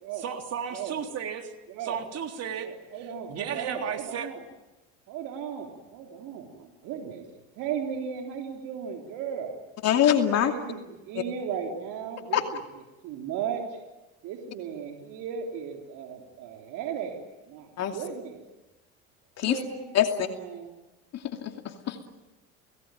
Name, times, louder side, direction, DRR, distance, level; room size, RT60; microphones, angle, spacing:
voice 1, 0.2-1.5 1.8-2.7 3.0-4.3, right 8 dB, 50° right, 4 dB, 3.6 m, -34 dB
voice 2, 2.6-4.4 5.1-7.2 7.6-9.6 10.4-12.4 13.0-13.6 14.2-17.2 17.5-17.7 17.9-18.4 19.5-19.9 20.2-20.7, right 7 dB, 65° right, 2 dB, 3.7 m, -36 dB
voice 3, 9.8-10.5 11.1-11.2 12.3-12.5 17.8-18.0 19.4-19.6 19.9-20.3 21.1-22.1, left 10 dB, 50° left, 4 dB, 2.6 m, -24 dB
29.5 x 18.5 x 9.2 m, 1.1 s
hypercardioid pair, 80°, 33 cm